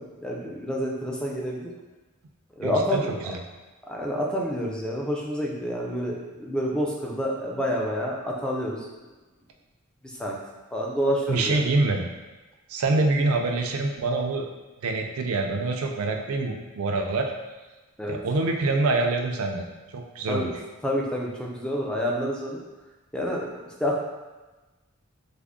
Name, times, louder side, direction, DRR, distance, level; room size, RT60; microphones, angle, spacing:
voice 1, 0.0-1.7 2.6-3.1 3.9-8.9 10.0-10.3 10.7-11.6 18.0-18.2 20.3-20.5 20.8-22.6 23.1-24.0, equal, 5° left, -2 dB, 0.4 m, -28 dB
voice 2, 2.6-3.0 3.3-3.4 11.3-12.1 12.7-14.5 14.8-17.3 18.1-19.7 19.9-20.5, right 3 dB, 80° right, 3 dB, 0.4 m, -25 dB
3.4 x 2.1 x 3.6 m, 1.2 s
head